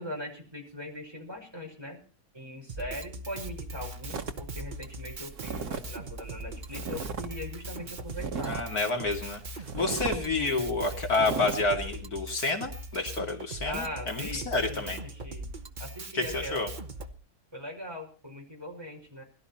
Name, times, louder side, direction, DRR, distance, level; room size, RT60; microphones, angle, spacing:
voice 1, 0.0-2.0 2.3-8.5 10.3-10.6 13.6-15.5 15.8-16.7 17.5-19.2, left 1 dB, 15° right, 1 dB, 5.5 m, -40 dB
Drum kit, 2.7-17.1, right 1 dB, 35° right, 1.2 m, -40 dB
sound 1, 4.1-7.3 7.6-8.8 9.2-9.3 9.6-10.2 10.6-10.8 11.1-11.6, right 5 dB, 80° right, 1.9 m, -36 dB
voice 2, 8.4-15.0 16.1-16.7, left 3 dB, 75° left, 2 dB, 3.1 m, -29 dB
21.5 x 12.5 x 4.4 m, 0.39 s
omnidirectional pair, 1.6 m